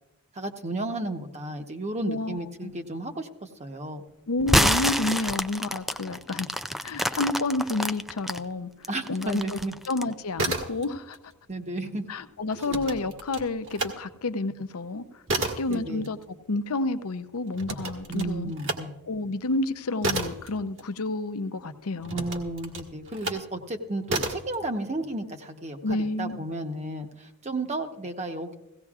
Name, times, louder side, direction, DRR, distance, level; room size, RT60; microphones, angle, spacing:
voice 1, 0.3-3.3 3.6-4.0 8.9-9.7 11.5-12.0 12.7-12.8 15.7-16.1 18.1-18.9 22.1-28.6, right 2 dB, 30° right, 5 dB, 1.0 m, -33 dB
voice 2, 2.1-2.7 4.3-6.5 6.8-9.6 9.9-11.2 12.1-15.2 15.6-18.5 19.1-22.3 25.8-26.5, left 2 dB, 85° left, 11 dB, 0.7 m, -30 dB
sound 1, 4.4-8.4 8.8-10.1, equal, ahead, 0.3 m, -26 dB
sound 2, 10.2-11.2 11.5-14.0 14.4-21.4 22.0-23.5 24.1-24.6, right 2 dB, 60° right, 1.6 m, -32 dB
17.5 x 16.5 x 2.4 m, 0.97 s
head